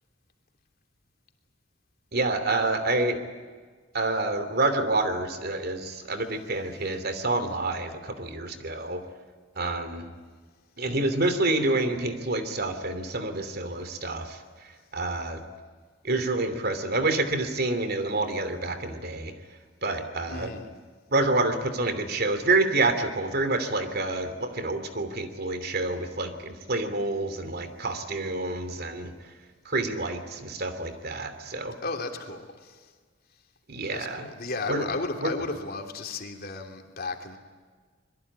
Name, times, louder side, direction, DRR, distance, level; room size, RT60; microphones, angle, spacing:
voice 1, 2.1-3.2 3.9-9.0 9.6-10.1 10.8-14.4 14.9-15.4 16.0-19.3 19.8-20.5 21.1-29.1 29.6-31.8 33.7-34.3 34.7-34.9 35.2-35.3, right 2 dB, 55° right, 9 dB, 2.9 m, -28 dB
voice 2, 20.3-20.7 31.8-32.8 33.9-37.4, left 3 dB, 50° left, 4 dB, 3.2 m, -34 dB
25.5 x 22.0 x 9.8 m, 1.5 s
head